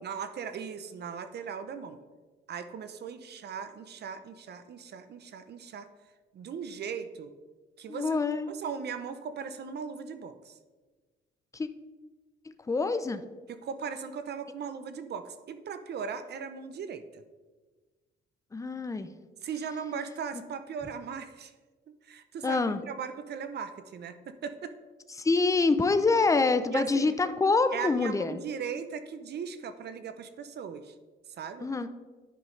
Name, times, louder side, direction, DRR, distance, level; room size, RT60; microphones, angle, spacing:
voice 1, 0.0-2.0 2.5-5.9 6.3-7.3 7.8-8.2 8.5-10.5 13.5-17.2 19.4-21.5 21.9-24.7 26.7-27.2 27.7-30.9 31.4-31.7, right 6 dB, 55° right, 10 dB, 0.6 m, -38 dB
voice 2, 7.9-8.5 11.5-11.7 12.5-13.2 18.5-19.1 22.4-22.8 25.2-28.4 31.6-31.9, left 3 dB, 15° left, 10 dB, 0.5 m, -26 dB
10.0 x 5.2 x 3.2 m, 1.3 s
cardioid pair, 90°, 20 cm